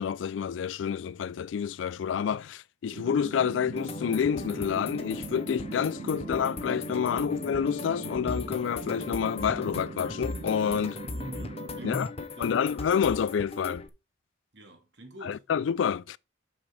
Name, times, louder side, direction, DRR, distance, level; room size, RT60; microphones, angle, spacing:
voice 1, 0.0-11.0 11.8-12.1 12.4-13.9 15.2-16.2, left 7 dB, 85° left, 0.3 m, -28 dB
sound 1, 2.9-12.0, right 4 dB, 45° right, 0.4 m, -41 dB
sound 2, 3.7-13.9, left 3 dB, 35° left, 0.8 m, -38 dB
voice 2, 11.1-12.7 14.5-15.5, right 1 dB, 70° right, 2.2 m, -45 dB
6.1 x 6.0 x 4.9 m
head